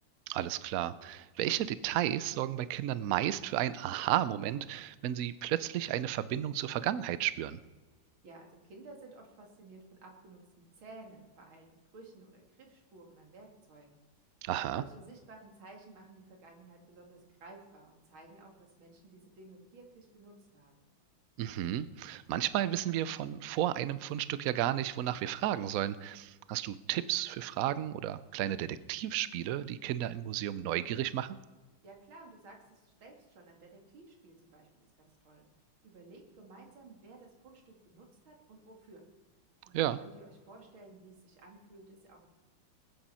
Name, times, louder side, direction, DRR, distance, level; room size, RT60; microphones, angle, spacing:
voice 1, 0.3-7.6 14.4-14.8 21.4-31.4 39.7-40.0, right 12 dB, 75° right, 15 dB, 0.8 m, -33 dB
voice 2, 8.2-11.7 11.9-14.0 14.7-20.9 31.8-35.4 35.8-39.0 39.6-42.3, right 2 dB, 90° right, 2 dB, 3.2 m, -54 dB
20.5 x 8.8 x 5.6 m, 1.3 s
omnidirectional pair, 2.2 m